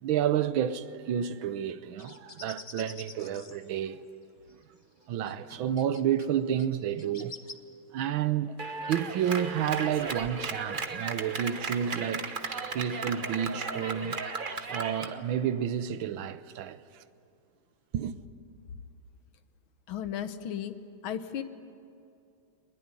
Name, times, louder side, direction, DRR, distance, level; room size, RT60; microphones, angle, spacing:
voice 1, 0.0-4.0 5.1-7.3 7.9-8.6 8.9-12.3 12.7-14.2 14.7-17.0 17.9-18.2, right 9 dB, 80° right, 1.6 m, -30 dB
sound 1, 2.0-3.7 4.5-4.6 5.2-6.3 6.6-7.5, left 4 dB, 35° left, 0.5 m, -47 dB
Clapping, 8.6-15.1, right 4 dB, 35° right, 0.9 m, -35 dB
voice 2, 19.9-20.7 21.0-21.4, left 9 dB, 90° left, 1.8 m, -34 dB
22.0 x 21.0 x 9.7 m
omnidirectional pair, 2.2 m